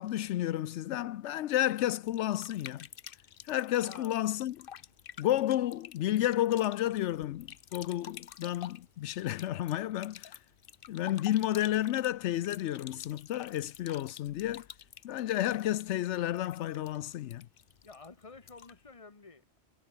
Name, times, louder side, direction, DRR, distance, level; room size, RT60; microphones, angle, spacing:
voice 1, 0.0-2.9 3.4-4.7 5.2-10.4 10.9-14.7 15.0-17.5, left 13 dB, 85° left, 0.9 m, -31 dB
sound 1, 2.1-18.9, left 9 dB, 55° left, 0.9 m, -50 dB
voice 2, 17.8-19.6, left 4 dB, 30° left, 1.6 m, -51 dB
omnidirectional pair, 1.1 m